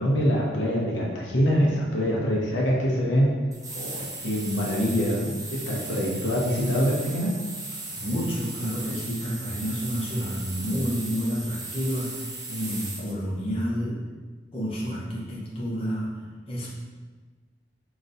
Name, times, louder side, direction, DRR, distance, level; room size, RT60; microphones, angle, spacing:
voice 1, 0.0-3.3 3.7-7.3, equal, 90° left, -3 dB, 0.9 m, -24 dB
sound 1, 3.5-13.1, right 2 dB, 20° right, 0.4 m, -37 dB
voice 2, 8.0-14.0 14.5-16.2 16.5-16.8, equal, 30° left, -6 dB, 0.9 m, -29 dB
5.1 x 3.0 x 2.6 m, 1.4 s
head